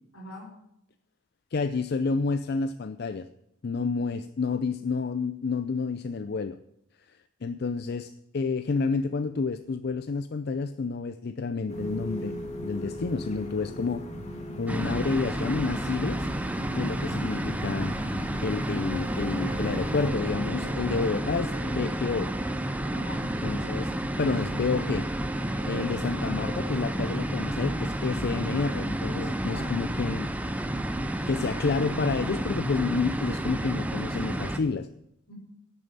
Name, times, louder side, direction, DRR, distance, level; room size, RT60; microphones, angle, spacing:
voice 1, 0.1-0.5 16.7-17.1 22.9-23.7 29.4-29.8 35.3-35.4, left 1 dB, 75° left, -1 dB, 5.0 m, -44 dB
voice 2, 1.5-3.3 3.6-6.6 7.1-14.0 14.6-16.3 16.7-17.9 18.4-22.3 23.2-23.9 24.2-30.3 30.6-30.8 31.2-34.9, left 4 dB, 50° left, 11 dB, 0.4 m, -30 dB
sound 1, 11.7-20.1, equal, 35° left, 1.9 m, -38 dB
sound 2, 14.7-34.6, right 1 dB, 5° right, 0.6 m, -31 dB
sound 3, 18.9-26.9, equal, 25° right, 3.7 m, -44 dB
10.5 x 6.9 x 9.0 m, 0.79 s
head